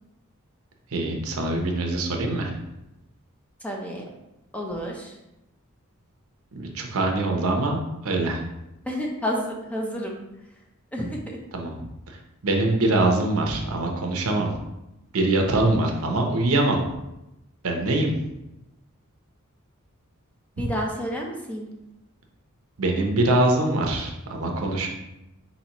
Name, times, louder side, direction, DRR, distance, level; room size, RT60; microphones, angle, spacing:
voice 1, 0.9-2.5 6.5-8.4 11.5-11.8 12.1-12.2 12.4-14.5 15.1-16.8 17.6-18.1 22.8-24.9, right 2 dB, 70° right, 2 dB, 0.8 m, -23 dB
voice 2, 3.6-4.0 4.5-5.1 8.9-10.2 10.9-11.2 20.6-21.7, equal, 5° left, -1 dB, 0.6 m, -30 dB
4.3 x 4.1 x 3.0 m, 0.92 s
head